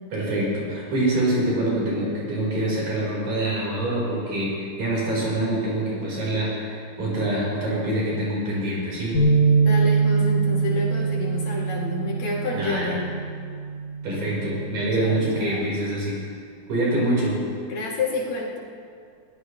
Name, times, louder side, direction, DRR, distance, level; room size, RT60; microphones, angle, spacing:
voice 1, 0.1-9.2 12.5-12.9 14.0-16.2 16.7-17.4, right 1 dB, 90° right, -5 dB, 6.1 m, -25 dB
sound 1, 9.1-15.4, right 4 dB, 40° left, 3.0 m, -23 dB
voice 2, 9.6-13.0 15.0-15.7 17.7-18.6, left 3 dB, 65° left, -4 dB, 3.7 m, -29 dB
21.5 x 16.5 x 3.2 m, 2.2 s
omnidirectional pair, 3.5 m